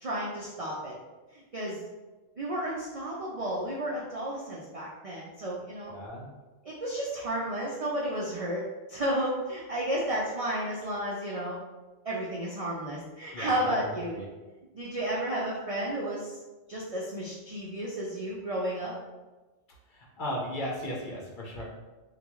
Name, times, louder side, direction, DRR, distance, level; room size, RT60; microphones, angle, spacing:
voice 1, 0.0-0.9 1.3-1.8 2.4-5.9 6.6-8.6 8.9-11.6 12.0-14.2 14.7-16.4 16.7-18.9, right 1 dB, 60° right, -5 dB, 0.3 m, -32 dB
voice 2, 5.9-6.3 13.3-13.7 14.1-14.3 19.9-21.6, left 1 dB, 50° left, -4 dB, 0.7 m, -36 dB
3.8 x 2.3 x 3.0 m, 1.2 s
omnidirectional pair, 1.3 m